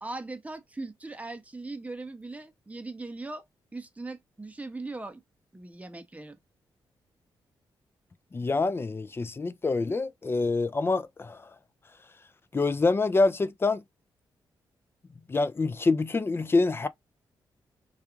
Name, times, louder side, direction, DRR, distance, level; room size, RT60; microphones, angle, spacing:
voice 1, 0.0-3.5 3.7-5.2 5.5-6.4, right 2 dB, 15° right, 0.7 m, -39 dB
voice 2, 8.3-11.4 12.5-13.8 15.3-16.9, left 3 dB, 25° left, 0.4 m, -26 dB
2.4 x 2.3 x 2.9 m
cardioid pair, 65°, 9 cm